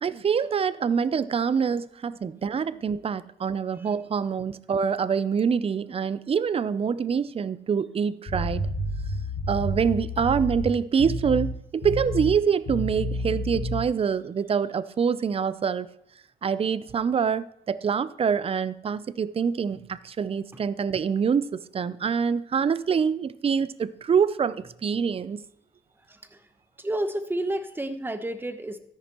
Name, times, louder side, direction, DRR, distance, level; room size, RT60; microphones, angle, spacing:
voice 1, 0.0-8.6 9.5-15.9 16.4-25.4, right 6 dB, 30° right, 17 dB, 0.5 m, -25 dB
sound 1, 8.3-10.7 11.0-11.5 11.8-12.4 12.7-13.8, left 1 dB, 50° left, 2.0 m, -30 dB
voice 2, 26.8-28.8, right 1 dB, 10° right, 9 dB, 1.0 m, -30 dB
13.0 x 10.5 x 3.0 m, 0.71 s
cardioid pair, 90°, 20 cm